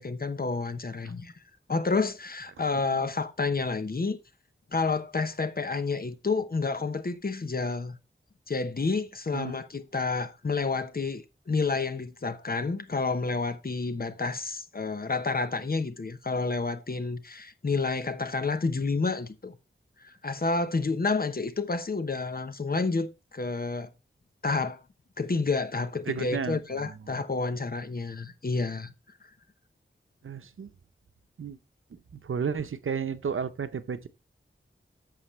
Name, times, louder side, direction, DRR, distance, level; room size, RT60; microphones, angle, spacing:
voice 1, 0.0-1.3 1.7-4.2 4.7-8.0 8.5-19.6 20.0-23.9 24.4-24.8 25.2-28.9, left 4 dB, 45° left, 1.0 m, -29 dB
voice 2, 2.7-3.1 9.3-9.6 26.1-27.2 30.2-30.7 31.4-31.6 31.9-34.1, right 6 dB, 85° right, 0.8 m, -33 dB
11.5 x 6.9 x 3.2 m
wide cardioid pair, 85°, 21 cm